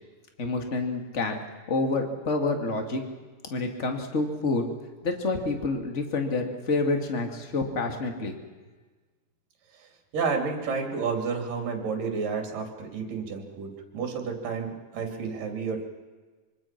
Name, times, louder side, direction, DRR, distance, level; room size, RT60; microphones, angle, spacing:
voice 1, 0.4-1.4 1.7-3.0 3.5-4.6 5.0-8.3, left 3 dB, 25° left, 4 dB, 2.0 m, -28 dB
voice 2, 9.8-15.8, right 5 dB, 60° right, 3 dB, 4.5 m, -31 dB
25.5 x 25.5 x 6.0 m, 1.3 s
omnidirectional pair, 4.5 m